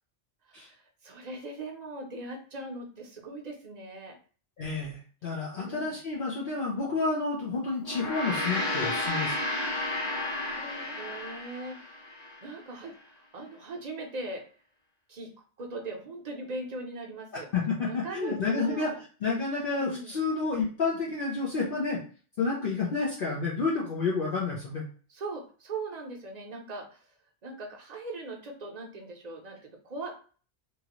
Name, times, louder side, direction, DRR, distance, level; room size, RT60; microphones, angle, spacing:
voice 1, 0.4-4.2 5.5-5.9 10.2-14.4 15.1-15.3 15.6-17.5 17.9-19.0 19.8-20.2 25.1-27.1 27.4-30.2, right 2 dB, 45° right, 1 dB, 0.7 m, -40 dB
voice 2, 4.6-9.4 17.5-18.9 19.2-22.0 22.4-24.8, left 4 dB, 55° left, -5 dB, 0.8 m, -30 dB
Gong, 7.8-12.4, left 2 dB, 75° left, 1.2 m, -32 dB
3.0 x 2.5 x 2.9 m, 0.40 s
omnidirectional pair, 1.1 m